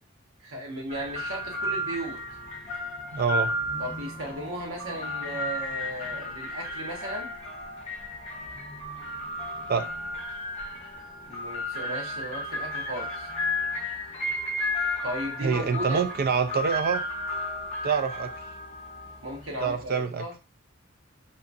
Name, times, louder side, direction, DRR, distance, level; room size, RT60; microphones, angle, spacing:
voice 1, 0.4-2.2 3.8-7.3 11.3-13.3 15.0-16.0 19.2-20.3, right 1 dB, 80° right, 0 dB, 1.0 m, -36 dB
sound 1, 0.9-20.0, left 1 dB, 35° left, 0.7 m, -33 dB
voice 2, 3.1-3.5 9.7-9.9 15.4-17.0 17.8-18.3 19.6-20.2, right 5 dB, 45° right, 8 dB, 0.4 m, -26 dB
2.7 x 2.3 x 2.6 m, 0.30 s
head